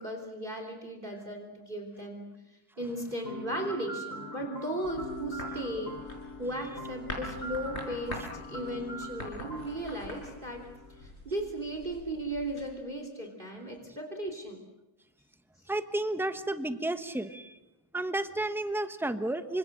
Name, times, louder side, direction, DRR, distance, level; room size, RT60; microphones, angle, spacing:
voice 1, 0.0-2.3 2.8-5.9 6.4-10.7 11.0-14.6, right 1 dB, 25° right, 4 dB, 3.3 m, -36 dB
sound 1, 3.2-11.1, left 1 dB, 55° left, 2.7 m, -42 dB
sound 2, 4.8-12.7, left 1 dB, 35° left, 5.9 m, -45 dB
voice 2, 15.7-17.6 17.9-19.6, right 1 dB, ahead, 9 dB, 0.8 m, -32 dB
28.5 x 25.5 x 6.6 m, 1.0 s
omnidirectional pair, 2.1 m